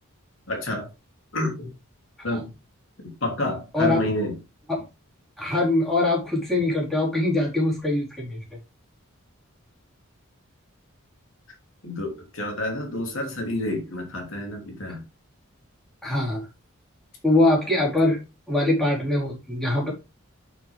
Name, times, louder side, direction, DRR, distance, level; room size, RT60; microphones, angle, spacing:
voice 1, 0.5-0.9 1.3-1.7 2.2-2.5 3.0-4.4 11.8-15.0, left 1 dB, 65° left, 3.1 m, -29 dB
voice 2, 5.4-8.4 16.0-16.5 17.2-18.2 18.5-19.9, left 2 dB, ahead, 4.3 m, -23 dB
9.5 x 6.1 x 3.6 m
head